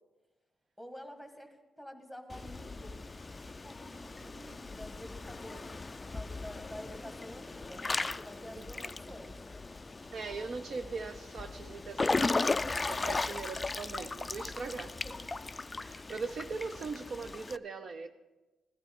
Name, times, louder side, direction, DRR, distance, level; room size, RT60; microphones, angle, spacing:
voice 1, 0.8-2.9 3.4-9.4 15.0-15.3, equal, 5° right, 5 dB, 1.5 m, -49 dB
Water / Splash splatter / Drip, 2.3-17.6, left 3 dB, 20° left, 0.3 m, -37 dB
voice 2, 8.6-8.9 10.1-14.9 15.8-18.1, right 4 dB, 50° right, 7 dB, 0.5 m, -40 dB
16.5 x 12.5 x 3.6 m, 1.1 s
cardioid pair, 120°, 0 cm